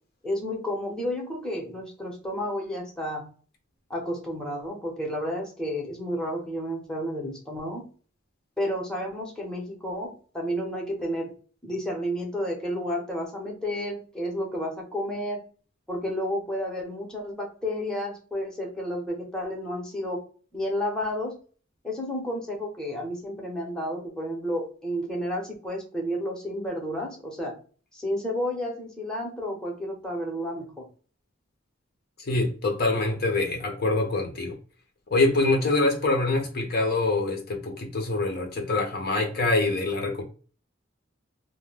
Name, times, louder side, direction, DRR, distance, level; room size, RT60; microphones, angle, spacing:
voice 1, 0.2-3.3 3.9-7.8 8.6-11.3 11.6-15.4 15.9-20.2 20.5-21.4 21.8-27.5 27.9-30.9, equal, 5° left, 0.7 m, -31 dB
voice 2, 32.2-34.6 35.1-40.2, left 2 dB, 50° left, 0.7 m, -25 dB
2.3 x 2.1 x 3.2 m
head